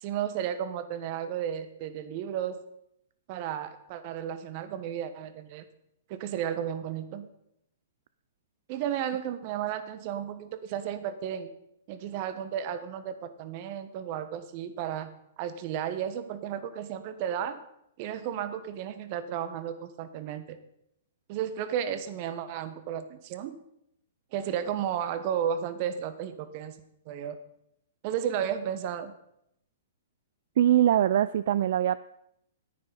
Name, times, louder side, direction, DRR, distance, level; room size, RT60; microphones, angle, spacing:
voice 1, 0.0-2.6 3.3-5.6 6.1-7.3 8.7-11.5 11.9-15.1 15.4-17.6 18.0-20.6 21.3-23.6 24.3-26.8 27.1-27.4 28.0-29.1, right 9 dB, 45° right, 11 dB, 1.1 m, -33 dB
voice 2, 30.6-32.0, right 11 dB, 60° right, 15 dB, 0.3 m, -22 dB
9.9 x 8.8 x 5.5 m, 0.76 s
hypercardioid pair, 125°, 0 cm